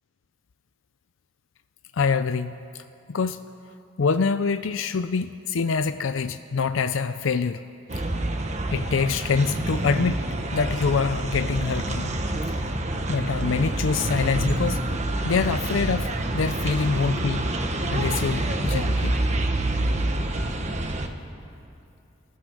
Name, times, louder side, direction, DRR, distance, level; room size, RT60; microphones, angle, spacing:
voice 1, 1.9-2.6 3.1-3.4 4.0-7.6 8.7-10.2 10.5-12.1 13.1-14.8 15.2-17.5 17.9-19.2, left 5 dB, 85° left, 11 dB, 0.5 m, -25 dB
sound 1, 7.9-21.1, right 1 dB, 35° right, 1.3 m, -27 dB
28.0 x 15.5 x 6.3 m, 2.6 s
head